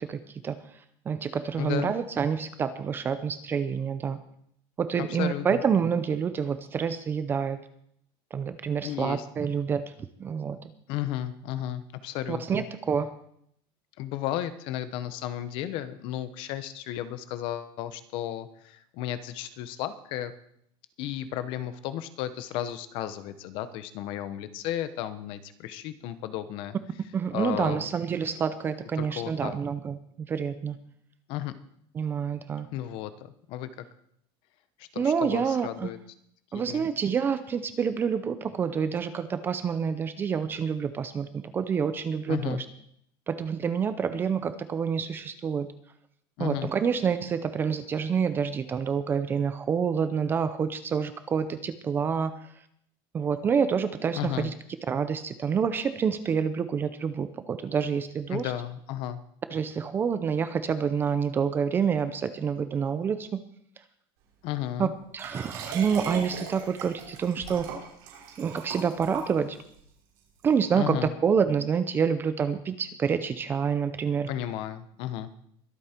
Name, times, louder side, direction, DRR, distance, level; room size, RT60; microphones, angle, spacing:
voice 1, 0.0-4.2 4.8-7.6 8.3-9.8 10.2-10.7 12.3-13.1 27.1-30.8 31.9-32.7 35.0-35.9 36.5-42.6 43.3-45.7 46.4-52.5 53.1-54.5 54.9-58.5 59.5-63.4 64.8-64.9 65.1-67.7 68.4-69.6 70.4-74.3, right 6 dB, 15° right, 12 dB, 0.6 m, -28 dB
voice 2, 1.6-1.9 5.1-5.6 8.8-9.2 10.9-12.6 14.0-20.3 21.0-26.8 27.3-27.9 29.0-29.6 31.3-31.5 32.7-33.9 34.8-36.0 36.5-36.9 42.3-42.6 46.4-46.7 54.1-54.5 58.3-59.2 64.4-64.9 70.7-71.1 74.3-75.3, left 12 dB, 45° left, 12 dB, 1.0 m, -34 dB
Liquid, 65.2-69.8 70.4-70.5, right 6 dB, 60° right, 5.1 m, -39 dB
22.5 x 8.6 x 4.5 m, 0.69 s
cardioid pair, 180°, 12 cm